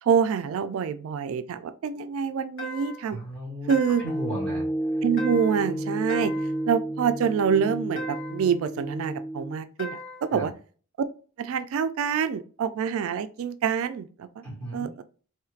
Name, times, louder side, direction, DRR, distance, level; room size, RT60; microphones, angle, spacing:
voice 1, 0.0-3.2 3.7-4.0 5.0-6.3 6.7-10.5 11.4-14.4 14.7-15.0, right 7 dB, 75° right, 12 dB, 0.3 m, -26 dB
sound 1, 2.6-3.1 3.7-4.2 5.2-5.7 6.1-6.6 8.0-8.5 9.8-10.3, left 1 dB, 75° left, 1.3 m, -39 dB
voice 2, 3.1-4.6 10.3-10.5 14.4-14.9, equal, 5° left, -6 dB, 1.8 m, -35 dB
sound 2, 4.0-9.6, right 1 dB, 25° left, 0.4 m, -31 dB
4.4 x 3.1 x 2.4 m, 0.40 s
head